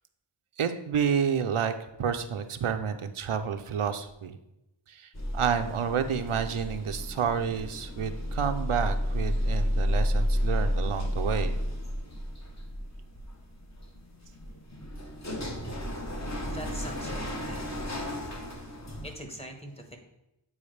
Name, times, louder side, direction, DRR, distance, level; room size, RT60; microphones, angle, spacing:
voice 1, 0.6-1.7 2.0-4.4 4.9-11.6, right 7 dB, 80° right, 8 dB, 0.6 m, -29 dB
sound 1, 5.1-19.1, equal, 35° left, 1.0 m, -32 dB
voice 2, 15.6-16.0 16.5-17.8 19.0-20.0, right 1 dB, 10° left, 3 dB, 1.1 m, -42 dB
8.5 x 4.7 x 3.2 m, 0.89 s
wide cardioid pair, 50°, 49 cm